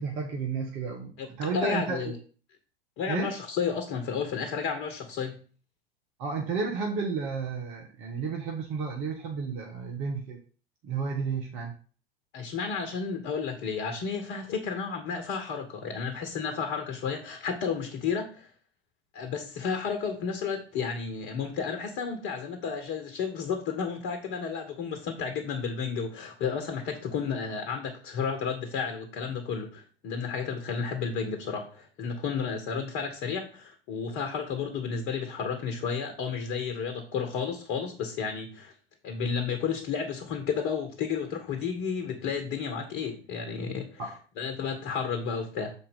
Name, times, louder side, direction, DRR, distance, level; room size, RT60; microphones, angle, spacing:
voice 1, 0.0-2.1 3.1-3.3 6.2-10.4 10.8-11.8 44.0-44.2, right 5 dB, 45° right, 2 dB, 1.4 m, -32 dB
voice 2, 1.5-2.1 3.0-5.4 12.3-18.5 19.1-38.7 39.0-44.1 44.4-45.7, left 6 dB, 40° left, 6 dB, 1.3 m, -32 dB
7.4 x 4.4 x 5.3 m, 0.39 s
figure-of-eight pair, 85°, 30 cm